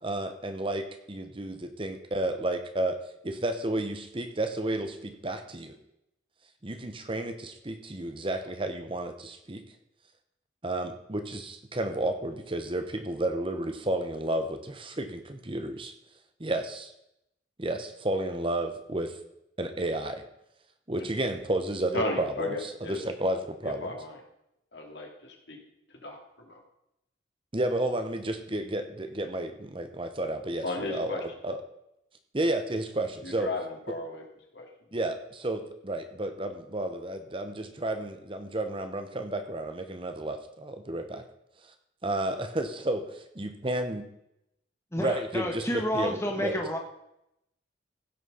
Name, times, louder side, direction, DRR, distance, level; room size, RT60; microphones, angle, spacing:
voice 1, 0.0-3.0 3.2-5.8 6.6-9.6 10.6-15.9 16.4-16.9 17.6-19.2 19.6-20.2 20.9-22.5 22.9-23.9 27.5-31.2 31.4-31.6 32.3-33.5 34.9-41.2 42.0-44.0 45.0-46.5, right 1 dB, 30° right, 7 dB, 1.0 m, -32 dB
voice 2, 21.9-23.0 23.6-24.2 24.7-25.6 26.0-26.6 30.6-31.2 33.2-34.2 34.5-34.7, left 2 dB, 65° left, 1 dB, 2.8 m, -35 dB
voice 3, 44.9-46.8, equal, 15° left, 2 dB, 1.3 m, -30 dB
16.0 x 6.3 x 5.6 m, 0.81 s
head